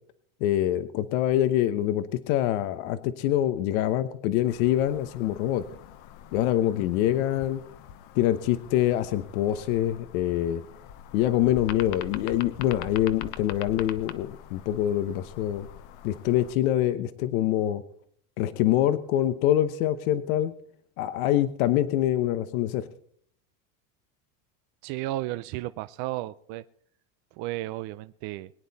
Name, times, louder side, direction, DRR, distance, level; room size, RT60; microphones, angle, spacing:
voice 1, 0.4-5.6 6.3-7.6 8.2-10.6 11.1-15.7 16.0-17.8 18.4-20.5 21.0-22.9, left 12 dB, 80° left, 11 dB, 1.1 m, -25 dB
sound 1, 4.4-16.6, left 10 dB, 60° left, 1.2 m, -44 dB
voice 2, 24.8-26.6 27.4-28.5, right 16 dB, 55° right, 12 dB, 0.6 m, -33 dB
22.5 x 9.7 x 4.2 m, 0.62 s
cardioid pair, 140°, 42 cm